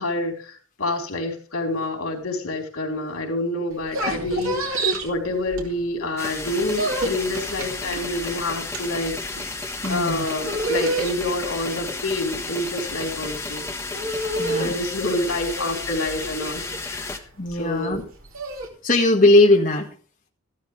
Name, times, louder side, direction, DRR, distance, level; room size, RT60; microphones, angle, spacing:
voice 1, 0.0-9.2 9.9-13.9 14.5-17.2 17.5-18.0, left 2 dB, 90° left, 1 dB, 4.0 m, -28 dB
sound 1, 3.7-6.1 6.4-18.7, right 2 dB, 80° right, 3.0 m, -30 dB
sound 2, 6.2-17.2, left 3 dB, 15° left, 1.3 m, -33 dB
voice 2, 9.8-10.3 14.4-14.7 17.4-18.0 18.8-19.9, left 2 dB, 40° left, 0 dB, 1.7 m, -19 dB
15.0 x 12.5 x 3.4 m, 0.42 s
head